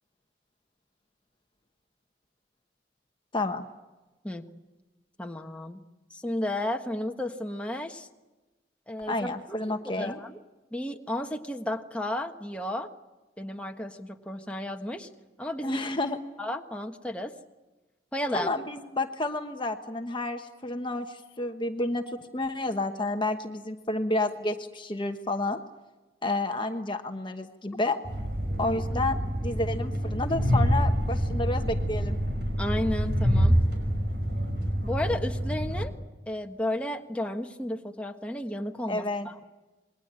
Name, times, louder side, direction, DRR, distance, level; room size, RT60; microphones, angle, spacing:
voice 1, 3.3-3.6 9.1-10.2 15.6-16.2 18.3-22.0 22.3-25.6 26.2-28.0 28.6-32.2 38.9-39.3, left 2 dB, 25° left, 6 dB, 1.2 m, -30 dB
voice 2, 5.2-5.8 6.1-8.1 8.9-9.6 9.8-10.4 10.7-12.9 13.4-15.1 15.4-15.8 16.4-17.3 18.1-18.5 32.6-33.6 34.8-35.9 36.3-39.5, left 1 dB, 5° left, 3 dB, 1.4 m, -33 dB
Train, 28.0-35.9, equal, 60° right, 5.7 m, -26 dB
28.0 x 21.5 x 8.9 m, 1.2 s
head